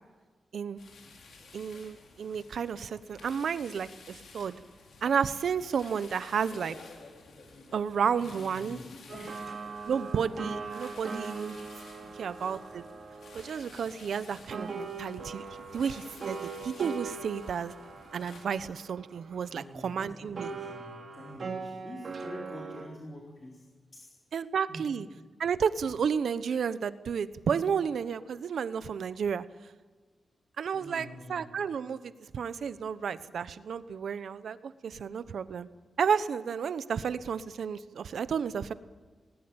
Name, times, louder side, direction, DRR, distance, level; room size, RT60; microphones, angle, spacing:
sound 1, 0.8-18.4, left 3 dB, 85° left, 4.9 m, -52 dB
voice 1, 1.5-4.6 5.0-6.7 7.7-8.8 9.9-11.6 12.2-12.8 13.3-15.4 15.7-17.7 18.1-20.5 24.3-25.1 25.4-29.4 30.6-35.7 36.0-38.7, right 7 dB, 75° right, 13 dB, 1.0 m, -32 dB
voice 2, 8.2-9.4 12.0-12.4 19.5-23.6 23.9-24.1 24.7-24.9 30.7-31.5, left 1 dB, 30° left, -2 dB, 4.1 m, -46 dB
sound 2, 9.1-14.2 14.5-20.0 20.4-22.9, right 4 dB, 55° right, 3.1 m, -41 dB
20.0 x 19.5 x 8.8 m, 1.4 s
wide cardioid pair, 115°, 0 cm